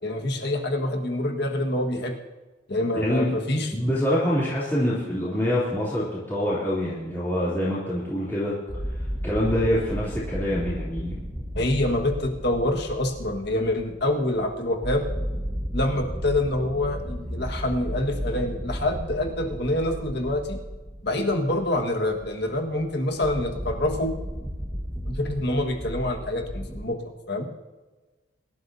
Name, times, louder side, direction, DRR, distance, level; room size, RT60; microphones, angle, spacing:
voice 1, 0.0-2.1 2.7-3.7 11.5-15.1 15.7-20.6 21.0-24.1 25.1-27.5, left 1 dB, 55° left, 3 dB, 1.7 m, -26 dB
voice 2, 3.0-3.3 3.7-8.6 8.9-11.2, equal, 10° left, -9 dB, 3.3 m, -25 dB
sound 1, 8.7-26.8, equal, 10° right, 1.4 m, -34 dB
24.5 x 12.0 x 2.8 m, 1.2 s
head